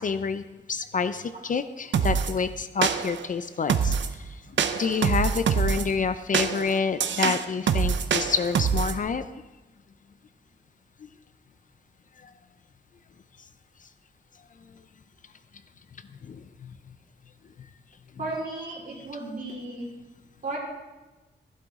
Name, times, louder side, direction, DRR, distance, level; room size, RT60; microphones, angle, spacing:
voice 1, 0.0-9.3 11.0-11.1 12.2-12.3 16.2-16.7, left 5 dB, 45° left, 11 dB, 0.5 m, -28 dB
sound 1, 1.9-2.3 2.8-3.3 3.7-4.1 4.6-5.9 6.3-9.0, right 7 dB, 80° right, 0.7 m, -25 dB
voice 2, 18.2-19.9 20.4-20.6, right 2 dB, 45° right, -4 dB, 4.2 m, -34 dB
14.5 x 12.0 x 3.6 m, 1.1 s
wide cardioid pair, 155°, 19 cm